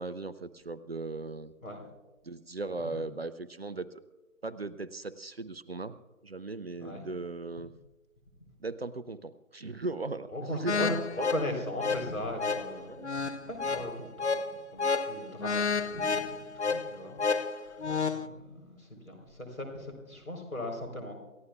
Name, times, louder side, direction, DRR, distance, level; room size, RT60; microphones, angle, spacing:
voice 1, 0.0-1.5 2.2-3.9 4.4-6.0 6.2-7.7 8.6-10.9 12.9-13.1, right 3 dB, 45° right, 15 dB, 0.6 m, -37 dB
voice 2, 10.3-12.9 13.2-21.2, left 1 dB, 80° left, 4 dB, 4.0 m, -39 dB
sound 1, 10.7-18.3, left 4 dB, 55° left, 0.7 m, -31 dB
28.0 x 14.0 x 2.4 m, 1.1 s
figure-of-eight pair, 150°, 42 cm